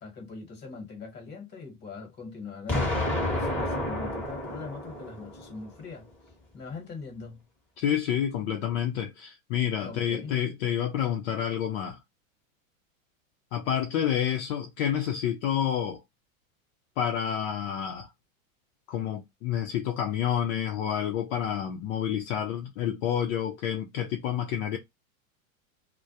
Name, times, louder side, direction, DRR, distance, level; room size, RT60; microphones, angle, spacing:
voice 1, 0.0-2.9 3.3-6.1 6.5-7.4 9.8-10.3, left 4 dB, 25° left, 1.1 m, -41 dB
Explosion, 2.7-5.7, left 1 dB, 5° left, 0.9 m, -30 dB
voice 2, 7.8-12.0 13.5-16.0 17.0-18.1 18.9-24.8, left 9 dB, 55° left, 0.6 m, -29 dB
2.2 x 2.1 x 2.7 m
supercardioid pair, 130°, 42 cm